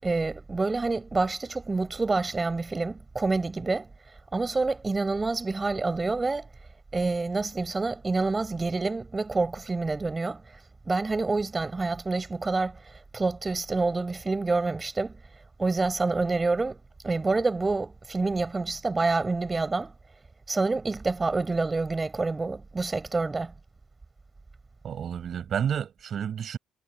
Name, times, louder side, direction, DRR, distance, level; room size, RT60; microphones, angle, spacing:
voice 1, 0.0-3.9 4.3-6.5 6.9-10.4 10.8-12.8 13.1-15.2 15.6-16.8 17.0-19.9 20.5-23.5, right 3 dB, 25° right, 6.6 m, -27 dB
voice 2, 24.8-26.6, right 8 dB, 60° right, 5.2 m, -30 dB
cardioid pair, 90°, 0 cm